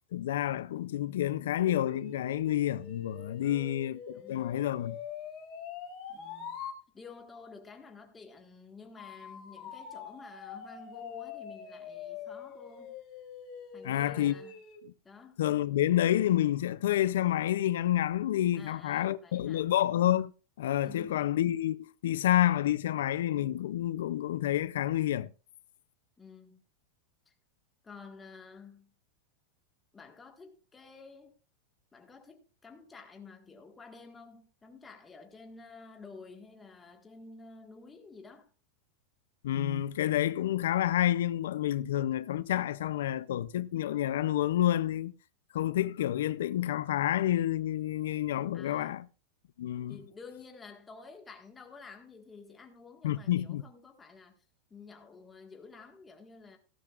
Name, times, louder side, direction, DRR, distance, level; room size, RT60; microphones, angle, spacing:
voice 1, 0.1-5.0 13.8-14.4 15.4-20.3 20.6-25.3 39.4-45.1 45.5-49.0 49.6-50.0 53.0-53.6, left 12 dB, 90° left, 0.5 m, -29 dB
sound 1, 1.6-6.8 9.0-14.8, left 7 dB, 30° left, 2.3 m, -44 dB
voice 2, 3.4-3.8 4.1-4.7 6.1-6.6 6.9-13.0 13.7-14.5 15.0-15.4 18.5-19.7 20.8-21.3 26.2-26.6 27.3-27.4 27.8-28.9 29.9-31.4 31.9-38.5 48.5-49.0 49.9-54.4 54.7-56.6, left 4 dB, 10° left, 1.6 m, -51 dB
15.0 x 12.0 x 2.4 m
supercardioid pair, 165°, 0 cm